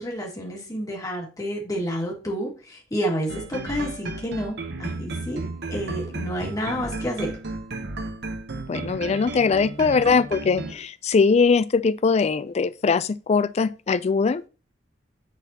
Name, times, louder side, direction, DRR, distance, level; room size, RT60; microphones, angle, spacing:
voice 1, 0.0-5.4 5.7-7.3, equal, 20° left, 2.0 m, -29 dB
sound 1, 3.3-10.7, right 2 dB, 65° right, 0.8 m, -33 dB
voice 2, 8.7-14.5, left 5 dB, 35° left, 0.3 m, -21 dB
9.9 x 4.1 x 2.8 m
head